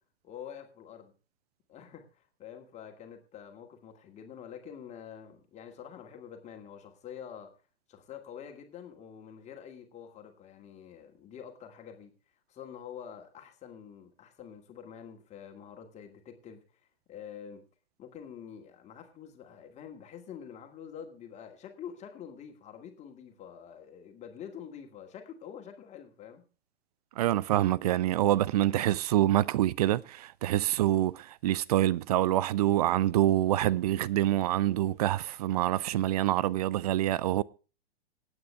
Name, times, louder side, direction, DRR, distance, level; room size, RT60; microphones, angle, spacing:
voice 1, 0.2-1.1 1.7-7.5 7.9-12.1 12.5-16.6 17.1-17.6 18.0-26.4, left 8 dB, 20° left, 2.4 m, -46 dB
voice 2, 27.2-37.4, right 13 dB, 35° right, 0.5 m, -26 dB
26.5 x 9.0 x 2.3 m
figure-of-eight pair, 110°, 33 cm